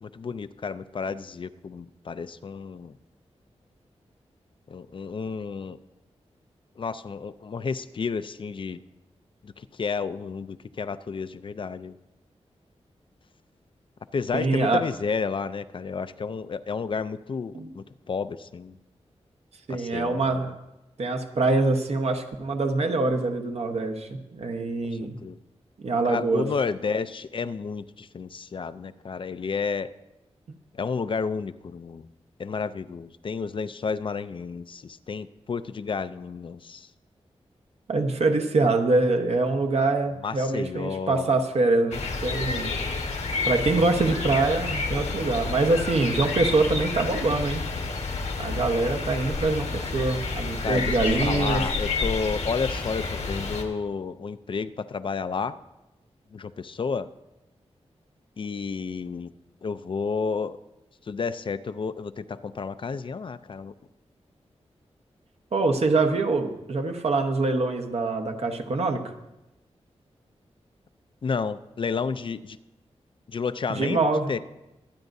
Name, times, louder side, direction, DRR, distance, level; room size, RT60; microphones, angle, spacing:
voice 1, 0.0-2.9 4.7-5.8 6.8-8.8 9.4-12.0 14.1-18.8 19.7-20.4 25.0-25.4 26.1-29.9 30.7-32.1 32.4-36.9 40.2-41.3 42.3-42.8 50.6-55.6 56.3-57.1 58.4-59.3 59.6-60.6 61.0-63.7 71.2-72.6 73.3-74.0 74.3-74.4, left 5 dB, 50° left, 13 dB, 0.4 m, -31 dB
voice 2, 14.3-14.8 17.5-17.7 19.7-20.5 21.0-25.2 25.8-26.5 37.9-42.7 43.4-47.6 48.4-51.6 65.5-69.0 73.7-74.3, right 3 dB, 70° right, 5 dB, 1.1 m, -24 dB
sound 1, 41.9-53.6, left 4 dB, 90° left, 1.5 m, -29 dB
23.5 x 9.1 x 2.7 m, 0.95 s
wide cardioid pair, 135°, 11 cm